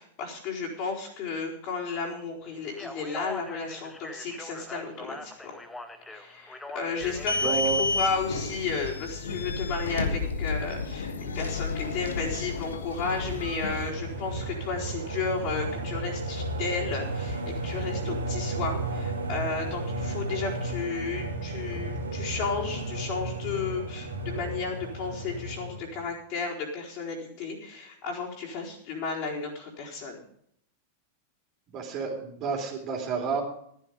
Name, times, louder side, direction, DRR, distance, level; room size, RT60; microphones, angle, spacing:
voice 1, 0.0-5.5 6.1-30.2, left 4 dB, 45° left, -2 dB, 4.4 m, -33 dB
Speech, 2.7-8.0, left 2 dB, 10° left, 1.3 m, -42 dB
sound 1, 7.0-13.9, left 3 dB, 70° left, 1.3 m, -31 dB
voice 2, 7.4-7.8 18.0-18.1 31.7-33.4, right 6 dB, 35° right, 1 dB, 3.6 m, -30 dB
sound 2, 12.9-26.0, right 2 dB, 75° right, 2.4 m, -33 dB
14.5 x 10.5 x 5.2 m, 0.67 s
figure-of-eight pair, 90°, 0 cm